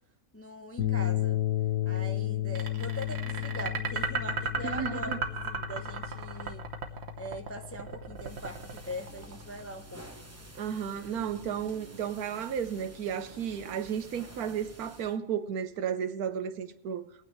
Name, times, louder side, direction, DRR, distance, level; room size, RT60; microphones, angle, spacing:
voice 1, 0.3-1.4 1.8-6.7 7.1-10.1, equal, 15° left, 0.4 m, -42 dB
sound 1, 0.8-9.3, left 14 dB, 80° left, 1.6 m, -34 dB
sound 2, 2.5-9.7, right 5 dB, 50° right, 1.2 m, -35 dB
voice 2, 4.6-5.2 10.5-17.1, right 8 dB, 80° right, 1.3 m, -33 dB
sound 3, 8.1-15.2, right 2 dB, 15° right, 0.8 m, -50 dB
22.0 x 9.1 x 3.2 m
omnidirectional pair, 1.6 m